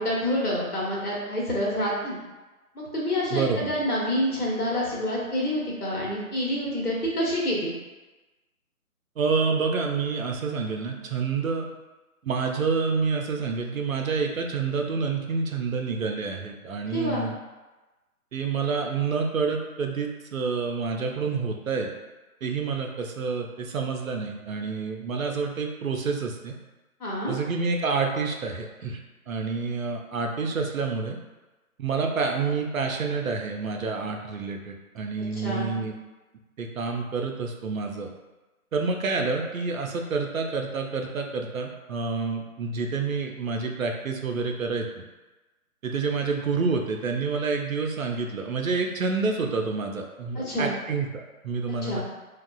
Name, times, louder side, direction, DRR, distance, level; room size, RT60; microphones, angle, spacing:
voice 1, 0.0-2.2 2.7-7.7 16.9-17.2 27.0-27.3 35.4-35.7 50.3-50.7 51.8-52.0, equal, 80° left, -4 dB, 1.1 m, -27 dB
voice 2, 3.3-3.7 9.2-11.7 12.2-17.4 18.3-21.9 22.4-26.5 27.3-29.0 29.3-31.2 31.8-35.9 36.6-38.1 38.7-45.0 45.8-52.0, right 4 dB, 65° right, 3 dB, 0.5 m, -28 dB
2.9 x 2.3 x 2.2 m, 1.1 s
figure-of-eight pair, 145°, 44 cm